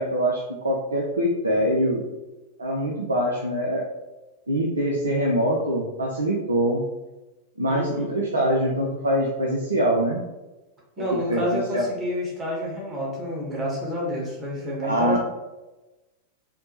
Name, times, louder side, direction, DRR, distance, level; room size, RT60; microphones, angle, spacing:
voice 1, 0.0-2.0 2.6-3.8 4.5-6.9 7.6-10.2 11.3-11.8 14.8-15.2, equal, 75° right, -2 dB, 0.4 m, -24 dB
voice 2, 7.7-8.1 11.0-15.2, equal, 20° right, -4 dB, 1.0 m, -29 dB
3.3 x 2.0 x 2.7 m, 1.1 s
figure-of-eight pair, 90°, 0 cm